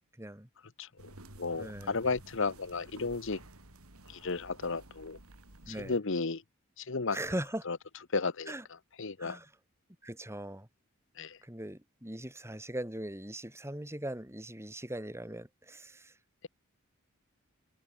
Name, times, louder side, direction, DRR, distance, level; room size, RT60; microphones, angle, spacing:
voice 1, 0.2-0.5 1.6-1.9 5.7-5.9 7.1-7.6 8.5-8.6 9.2-9.5 10.0-10.7 11.4-16.1, right 1 dB, 10° right, 3.3 m, -40 dB
sound 1, 1.0-6.0, right 1 dB, 85° right, 4.1 m, -53 dB
voice 2, 1.4-3.4 4.1-5.2 5.7-6.4 6.8-7.2 7.7-7.8 8.1-8.5 9.0-9.4 11.2-11.4, left 4 dB, 60° left, 1.1 m, -33 dB
head